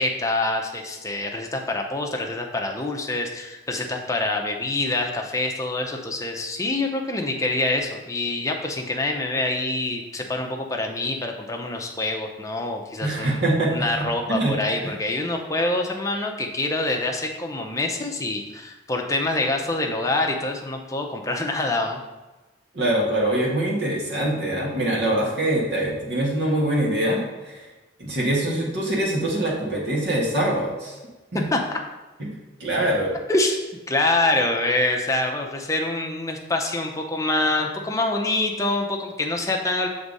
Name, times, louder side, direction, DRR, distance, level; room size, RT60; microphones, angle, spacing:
voice 1, 0.0-13.4 13.7-22.0 31.5-31.6 33.3-33.6 33.9-39.9, left 2 dB, 15° left, 2 dB, 0.7 m, -25 dB
voice 2, 13.0-13.7 14.0-14.9 22.7-27.6 28.0-31.0 31.3-31.4 32.2-32.3 32.6-33.2, right 1 dB, 60° right, -4 dB, 1.8 m, -24 dB
6.6 x 3.6 x 5.4 m, 1.2 s
head